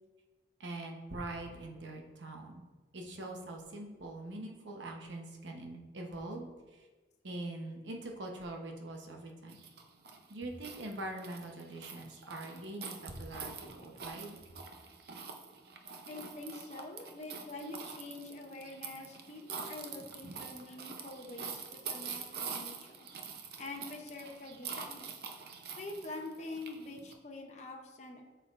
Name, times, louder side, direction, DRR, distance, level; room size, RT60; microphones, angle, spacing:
voice 1, 0.6-2.7 2.9-6.9 7.2-9.6 10.3-14.4, right 2 dB, 85° right, 2 dB, 1.0 m, -43 dB
sound 1, 9.5-27.1, right 5 dB, 55° right, 0.6 m, -45 dB
voice 2, 16.1-23.1 23.6-25.1 25.8-28.2, left 2 dB, 40° left, 1 dB, 0.7 m, -45 dB
8.2 x 5.7 x 2.5 m, 1.3 s
head